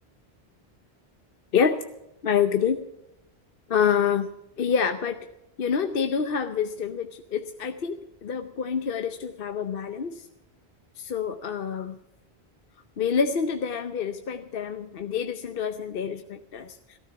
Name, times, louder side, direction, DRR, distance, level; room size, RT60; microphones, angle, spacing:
voice 1, 2.2-2.8 3.7-4.3 4.6-5.2 5.6-10.3 11.0-12.0 13.0-17.0, left 7 dB, 60° left, 7 dB, 1.0 m, -27 dB
15.0 x 13.5 x 5.9 m, 0.87 s
omnidirectional pair, 1.1 m